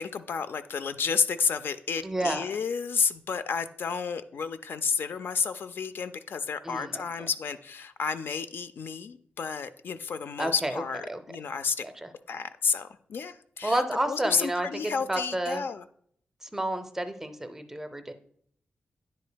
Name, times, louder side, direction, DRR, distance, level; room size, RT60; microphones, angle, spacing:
voice 1, 0.0-11.8 12.3-13.8 14.1-15.8, left 6 dB, 65° left, 11 dB, 0.3 m, -31 dB
voice 2, 2.0-2.5 6.6-7.3 10.4-10.8 11.1-11.2 11.8-12.1 13.6-15.6 16.4-18.1, right 1 dB, 10° right, 8 dB, 0.5 m, -31 dB
9.9 x 5.2 x 2.2 m, 0.63 s
wide cardioid pair, 130°, 4 cm